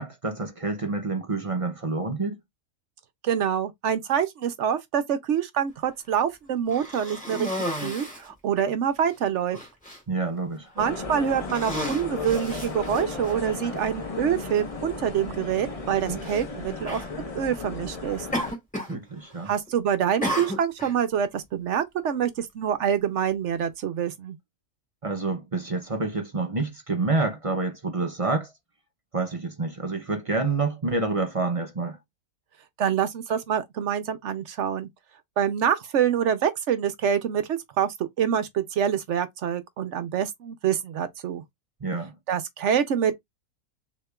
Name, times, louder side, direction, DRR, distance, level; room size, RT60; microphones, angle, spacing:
voice 1, 0.0-2.4 10.1-10.7 16.1-16.3 18.9-19.5 25.0-28.5 29.1-32.0 41.8-42.1, right 3 dB, 45° right, 0.4 m, -28 dB
voice 2, 3.2-7.5 7.8-9.6 10.8-17.0 17.3-18.3 19.5-24.4 32.8-34.9 35.4-41.4 42.3-43.1, right 8 dB, 65° right, 0.8 m, -26 dB
Cough, 6.7-8.3 9.0-9.1 9.5-10.0 10.8-11.0 11.4-13.3 14.3-14.4 16.2-16.4 16.8-17.1 18.3-19.0 19.3-19.7 20.2-21.0, equal, 5° left, 2.3 m, -33 dB
sound 1, 10.8-18.5, left 3 dB, 30° left, 0.7 m, -35 dB
6.4 x 2.9 x 2.3 m
omnidirectional pair, 1.5 m